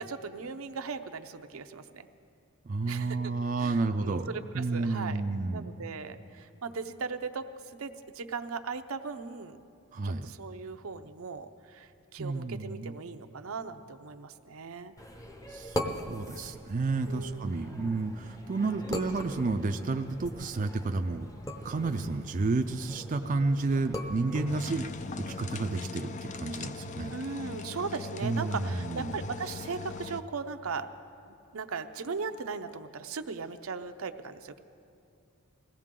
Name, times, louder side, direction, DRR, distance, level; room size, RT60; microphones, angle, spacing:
voice 1, 0.0-2.1 2.9-3.2 3.6-5.2 5.5-7.5 7.8-9.6 10.0-14.9 17.1-17.8 27.1-30.9 31.5-34.6, right 5 dB, 75° right, 8 dB, 0.7 m, -38 dB
voice 2, 2.7-4.3 4.5-5.7 9.9-10.3 12.2-12.9 15.5-21.3 21.6-24.9 25.2-27.1 28.2-29.1, right 3 dB, 40° right, 6 dB, 0.4 m, -31 dB
sound 1, 15.0-25.4, left 1 dB, 15° left, 0.8 m, -41 dB
sound 2, 24.5-30.2, left 3 dB, 35° left, 0.4 m, -40 dB
21.0 x 16.5 x 3.7 m, 2.5 s
head